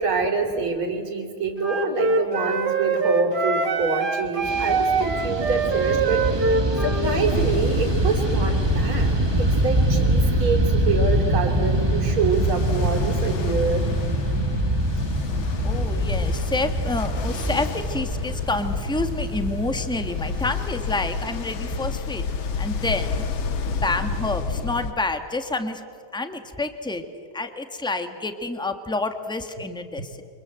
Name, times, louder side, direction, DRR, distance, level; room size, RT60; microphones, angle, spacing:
voice 1, 0.0-6.5 6.8-13.9 14.9-15.0, right 4 dB, 80° right, 3 dB, 4.0 m, -26 dB
Wind instrument woodwind instrument, 1.6-7.1, right 4 dB, 50° right, 2.7 m, -24 dB
Fixed-wing aircraft airplane, 4.4-21.9, right 2 dB, 25° right, 0.5 m, -25 dB
Ocean, 7.0-24.9, left 5 dB, 70° left, 2.1 m, -30 dB
voice 2, 15.6-22.3 22.6-23.2 23.7-25.8 26.1-27.0 27.3-30.2, left 2 dB, ahead, 7 dB, 1.3 m, -28 dB
29.0 x 25.5 x 7.9 m, 2.2 s
omnidirectional pair, 2.3 m